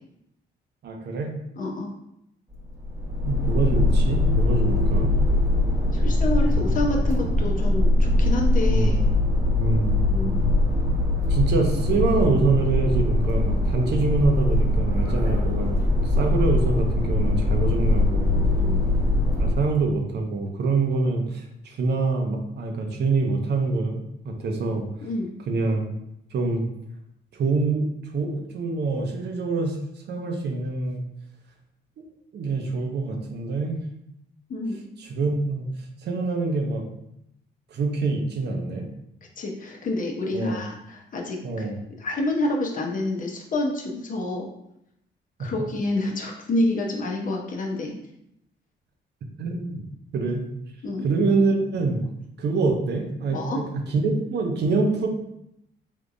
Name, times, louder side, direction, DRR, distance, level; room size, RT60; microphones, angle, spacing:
voice 1, 0.8-1.4 3.2-5.1 8.7-9.0 9.6-9.9 11.3-18.5 19.4-24.9 25.5-25.8 26.3-26.7 27.3-29.8 30.1-31.0 32.0-32.1 32.3-33.8 35.0-35.7 36.0-36.8 37.7-38.9 40.3-40.6 41.4-41.8 45.4-45.5 49.4-49.8 50.1-50.4 51.0-52.0 52.4-55.1, right 3 dB, 60° right, 3 dB, 0.6 m, -25 dB
voice 2, 1.6-1.9 5.9-9.0 10.1-10.4 18.6-18.8 25.0-25.3 34.5-34.8 39.4-41.4 42.0-44.5 45.4-47.9 50.8-51.1 53.3-53.6, left 2 dB, 40° left, 0 dB, 0.7 m, -28 dB
sound 1, 2.5-19.8, left 2 dB, 15° right, 0.8 m, -22 dB
3.5 x 2.8 x 2.5 m, 0.78 s
cardioid pair, 90°, 20 cm